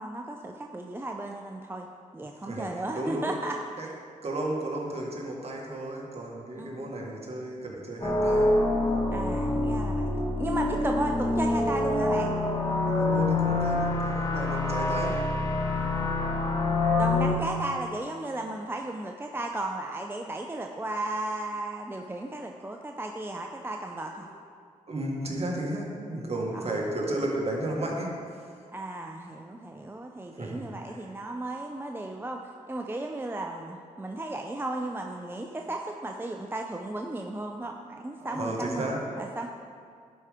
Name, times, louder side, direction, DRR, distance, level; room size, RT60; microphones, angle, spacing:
voice 1, 0.0-1.9 2.1-3.6 6.6-6.8 9.1-10.1 10.4-12.3 15.7-16.1 17.0-24.3 26.5-26.8 28.7-38.9 39.2-39.5, right 2 dB, 15° right, 2 dB, 0.6 m, -35 dB
voice 2, 2.4-3.4 3.8-3.9 4.2-8.5 12.9-15.2 24.9-28.4 30.4-31.0 38.2-39.2, right 1 dB, 45° right, -2 dB, 1.8 m, -33 dB
sound 1, 8.0-17.3, left 2 dB, 30° left, 1.5 m, -26 dB
11.0 x 4.9 x 3.7 m, 2.2 s
supercardioid pair, 55°, 14 cm